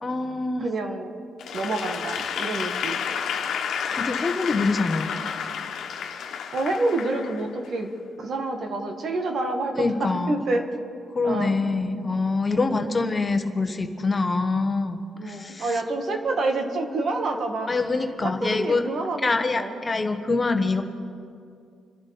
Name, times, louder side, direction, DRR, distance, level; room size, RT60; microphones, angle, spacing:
voice 1, 0.0-0.7 3.9-5.1 9.7-10.4 11.1-15.7 17.7-18.8 19.2-20.8, left 3 dB, 25° left, 6 dB, 1.3 m, -25 dB
voice 2, 0.6-1.2 1.5-3.0 6.5-7.9 8.2-10.7 11.2-11.6 12.5-12.9 15.2-17.7 18.2-19.8, right 2 dB, 55° right, 4 dB, 1.9 m, -28 dB
Applause / Crowd, 1.4-7.8, left 7 dB, 70° left, 1.5 m, -30 dB
28.5 x 11.0 x 4.3 m, 2.3 s
cardioid pair, 90°, 0 cm